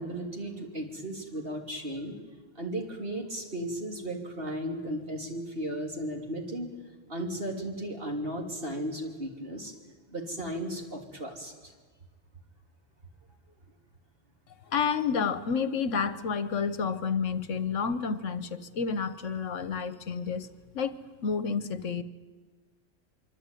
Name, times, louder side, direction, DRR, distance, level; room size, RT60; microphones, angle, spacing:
voice 1, 0.0-2.1 2.5-6.7 7.1-9.7 10.1-11.7, right 1 dB, 45° right, 1 dB, 3.5 m, -35 dB
voice 2, 14.7-20.5 20.7-20.9 21.2-22.0, left 6 dB, 70° left, 13 dB, 1.3 m, -30 dB
24.5 x 24.0 x 9.1 m, 1.4 s
omnidirectional pair, 1.3 m